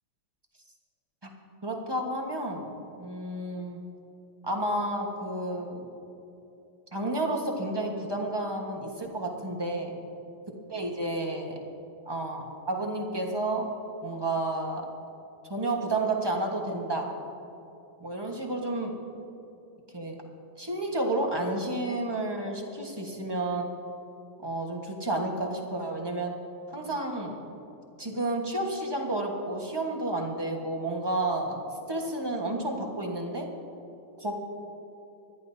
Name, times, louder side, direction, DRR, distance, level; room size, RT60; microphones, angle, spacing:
voice 1, 1.6-2.7 3.0-3.8 4.4-5.8 6.9-9.9 10.7-11.6 12.0-13.7 14.0-14.8 15.5-17.1 18.0-18.9 19.9-20.2 20.6-23.7 24.4-26.3 26.7-27.3 28.0-31.6 31.9-33.5 34.2-34.3, right 2 dB, 15° right, 1 dB, 1.0 m, -31 dB
26.0 x 11.0 x 2.8 m, 2.8 s
omnidirectional pair, 2.3 m